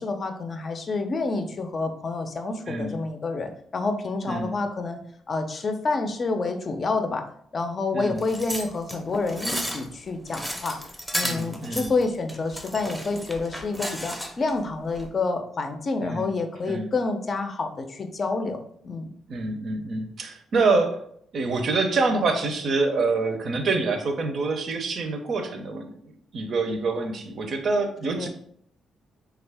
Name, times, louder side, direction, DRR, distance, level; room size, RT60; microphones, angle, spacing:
voice 1, 0.0-5.0 5.3-7.2 7.5-10.8 11.1-19.1 28.1-28.3, left 3 dB, 40° left, 6 dB, 0.5 m, -28 dB
voice 2, 2.7-3.0 4.3-4.5 7.9-8.2 11.2-11.9 16.0-16.3 16.7-16.9 19.3-21.0 21.3-28.3, right 3 dB, 60° right, 6 dB, 0.6 m, -26 dB
sound 1, 8.2-14.5 14.9-15.1, equal, ahead, 0.7 m, -33 dB
3.4 x 2.4 x 3.4 m, 0.67 s
cardioid pair, 90°, 0 cm